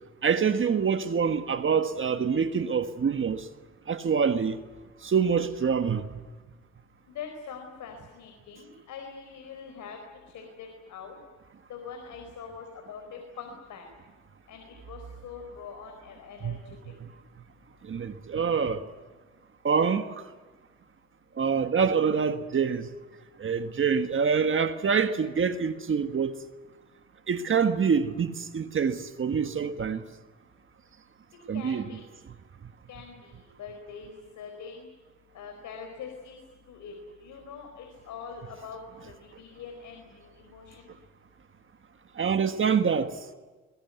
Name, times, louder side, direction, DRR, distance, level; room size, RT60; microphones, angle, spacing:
voice 1, 0.2-3.5 3.9-4.6 5.0-6.0 16.4-16.6 17.0-17.1 17.8-18.8 19.6-20.1 21.4-22.9 23.4-26.3 27.3-30.0 31.5-31.8 42.2-43.2, right 6 dB, 40° right, 1.5 m, -26 dB
voice 2, 7.1-10.0 10.3-11.2 11.7-13.9 14.5-16.9 31.5-32.0 32.9-34.9 35.3-36.4 36.7-36.9 37.2-40.9, left 6 dB, 75° left, 4.6 m, -43 dB
22.0 x 21.5 x 9.4 m
cardioid pair, 90°, 30 cm